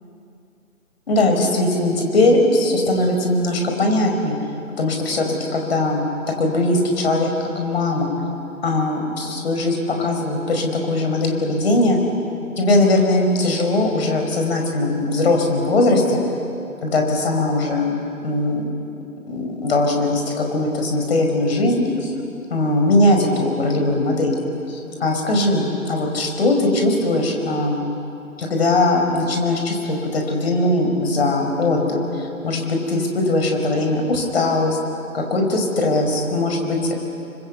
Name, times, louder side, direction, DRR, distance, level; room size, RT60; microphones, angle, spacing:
voice 1, 1.1-4.4 4.8-5.3 5.5-6.1 6.4-8.1 8.6-12.0 12.6-16.2 16.8-17.9 18.2-18.7 19.3-21.7 22.0-22.1 22.5-24.3 24.7-27.8 28.4-34.8 35.1-36.9, left 2 dB, 45° left, 2 dB, 5.3 m, -20 dB
28.5 x 25.0 x 8.3 m, 2.7 s
figure-of-eight pair, 145°, 42 cm